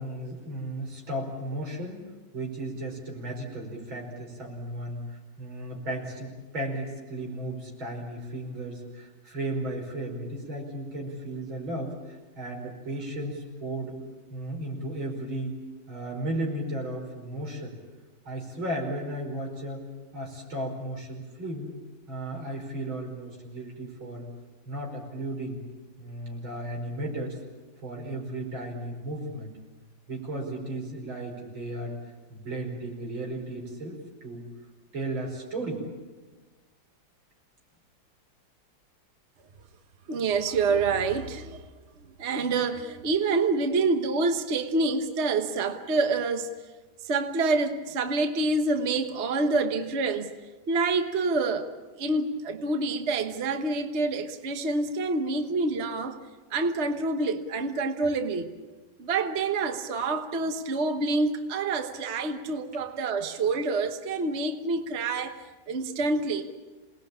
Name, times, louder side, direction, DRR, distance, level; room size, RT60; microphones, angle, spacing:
voice 1, 0.0-2.0 2.3-14.0 14.3-15.6 15.9-17.8 18.3-19.9 20.1-21.7 22.1-24.2 24.7-25.6 26.0-27.4 27.8-29.5 30.1-31.9 32.3-34.4 34.9-35.8, right 1 dB, 90° right, 1 dB, 5.9 m, -35 dB
voice 2, 40.1-41.6 42.2-46.5 47.0-50.3 50.7-56.2 56.5-58.5 59.0-65.4 65.7-66.5, right 3 dB, 40° right, 7 dB, 1.4 m, -27 dB
28.0 x 19.5 x 8.7 m, 1.3 s
omnidirectional pair, 2.1 m